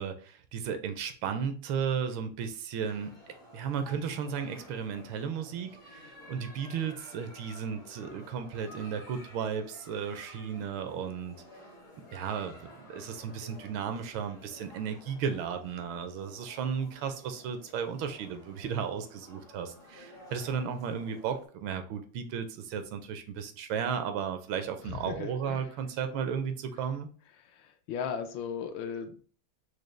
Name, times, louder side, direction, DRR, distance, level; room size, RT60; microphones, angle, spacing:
voice 1, 0.0-3.1 3.5-11.4 12.1-27.1, right 7 dB, 80° right, 8 dB, 1.4 m, -34 dB
sound 1, 2.8-21.5, left 1 dB, 30° left, 0.5 m, -52 dB
voice 2, 24.8-25.7 27.4-29.2, left 7 dB, 75° left, 5 dB, 1.3 m, -37 dB
4.9 x 2.2 x 3.1 m, 0.43 s
omnidirectional pair, 2.3 m